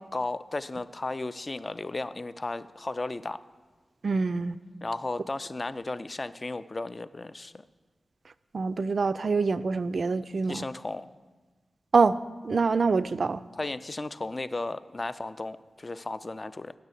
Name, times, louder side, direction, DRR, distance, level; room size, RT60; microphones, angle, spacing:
voice 1, 0.1-3.4 4.8-7.6 10.5-11.1 13.5-16.7, left 2 dB, 35° left, 14 dB, 0.3 m, -34 dB
voice 2, 4.0-4.6 8.5-10.6 11.9-12.2 12.4-13.4, right 4 dB, 60° right, 13 dB, 0.3 m, -25 dB
7.4 x 7.0 x 8.2 m, 1.3 s
wide cardioid pair, 105°, 0 cm